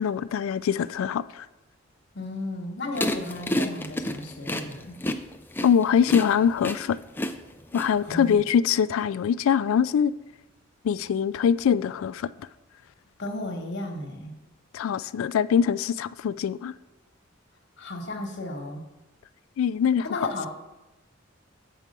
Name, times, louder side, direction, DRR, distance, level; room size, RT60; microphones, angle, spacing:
voice 1, 0.0-1.5 5.6-7.0 7.7-10.1 10.8-12.3 14.7-16.7 19.6-20.3, left 7 dB, 90° left, 0.3 m, -23 dB
voice 2, 2.1-5.0 8.0-8.4 13.2-14.3 17.8-18.8 20.0-20.5, left 2 dB, 60° left, 1.2 m, -34 dB
sound 1, 3.0-8.3, left 1 dB, 10° left, 0.4 m, -29 dB
7.5 x 4.6 x 6.6 m
head